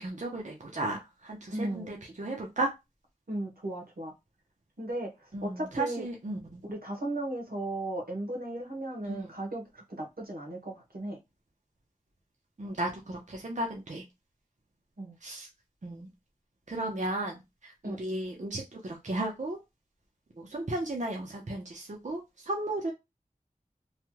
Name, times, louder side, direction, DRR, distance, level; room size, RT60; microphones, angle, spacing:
voice 1, 0.0-2.7 5.3-6.6 9.1-9.2 12.6-14.0 15.2-15.5 15.8-16.1 16.7-17.4 17.6-19.6 20.4-22.9, right 2 dB, 55° right, 0 dB, 0.7 m, -34 dB
voice 2, 1.5-1.9 3.3-4.1 4.8-6.1 6.6-11.2 15.0-15.2 17.8-18.0, right 1 dB, 80° right, 1 dB, 1.1 m, -36 dB
3.2 x 2.2 x 2.9 m, 0.22 s
wide cardioid pair, 55°, 15 cm